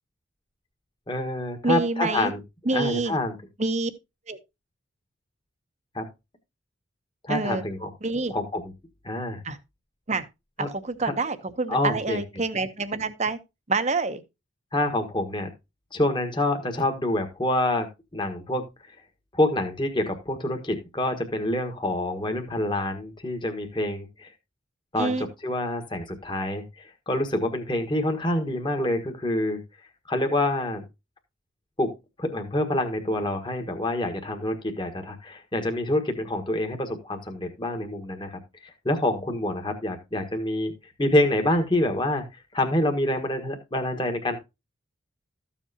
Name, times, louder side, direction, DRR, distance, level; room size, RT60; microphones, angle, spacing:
voice 1, 1.1-2.4 2.7-3.4 5.9-6.0 7.2-7.9 8.3-8.7 9.0-9.4 10.6-10.7 11.0-11.1 11.7-12.2 14.7-15.5 15.9-17.9 18.1-18.6 19.3-24.3 24.9-29.6 30.1-30.8 31.8-40.7 41.0-42.2 42.5-44.4, left 1 dB, 25° left, 1.4 m, -27 dB
voice 2, 1.6-2.3 2.7-3.1 3.6-3.9 4.3-4.4 7.3-7.6 8.0-8.3 9.4-9.6 10.1-10.2 10.7-13.4 13.7-14.2 25.0-25.3, right 3 dB, 35° right, 0.8 m, -27 dB
13.5 x 7.3 x 2.8 m
head